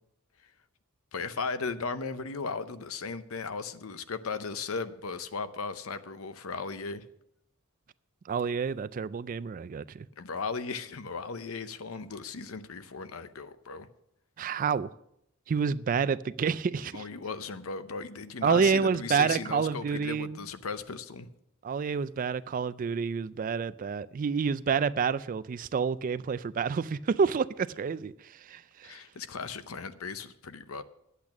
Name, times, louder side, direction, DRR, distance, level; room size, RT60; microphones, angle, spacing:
voice 1, 1.1-7.1 10.2-13.9 16.9-21.3 28.8-30.8, left 4 dB, 80° left, 0.7 m, -36 dB
voice 2, 8.3-10.1 14.4-14.9 15.5-17.0 18.4-20.4 21.6-28.1 28.5-29.0, right 6 dB, 40° right, 0.3 m, -28 dB
10.5 x 8.4 x 6.0 m
head